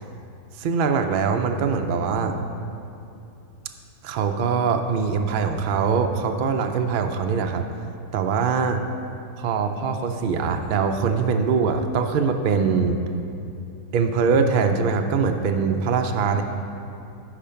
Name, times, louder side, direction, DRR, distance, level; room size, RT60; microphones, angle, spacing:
voice 1, 0.6-2.4 4.0-7.7 8.1-8.8 9.4-13.0 13.9-16.4, right 5 dB, 75° right, 5 dB, 0.4 m, -22 dB
8.8 x 5.0 x 5.6 m, 2.6 s
omnidirectional pair, 1.5 m